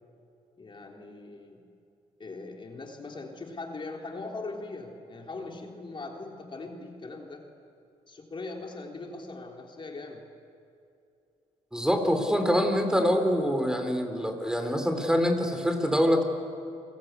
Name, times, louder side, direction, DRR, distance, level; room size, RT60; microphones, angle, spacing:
voice 1, 0.6-1.6 2.2-7.4 8.1-10.3, left 3 dB, 35° left, 1 dB, 3.6 m, -40 dB
voice 2, 11.7-16.2, equal, 5° right, 5 dB, 4.1 m, -25 dB
30.0 x 21.0 x 8.4 m, 2.6 s
supercardioid pair, 70°, 14 cm